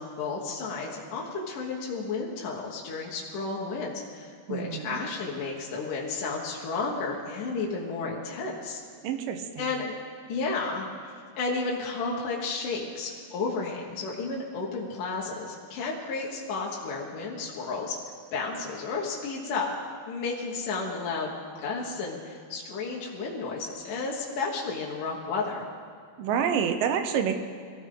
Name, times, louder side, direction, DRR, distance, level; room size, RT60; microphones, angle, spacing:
voice 1, 0.0-8.8 9.6-9.9 10.3-10.9 11.4-18.0 18.3-19.7 20.1-25.7, left 4 dB, 65° left, -3 dB, 2.8 m, -32 dB
voice 2, 4.5-5.0 9.0-9.7 26.2-27.3, right 7 dB, 70° right, 6 dB, 2.4 m, -28 dB
23.0 x 15.5 x 3.9 m, 2.2 s
omnidirectional pair, 4.3 m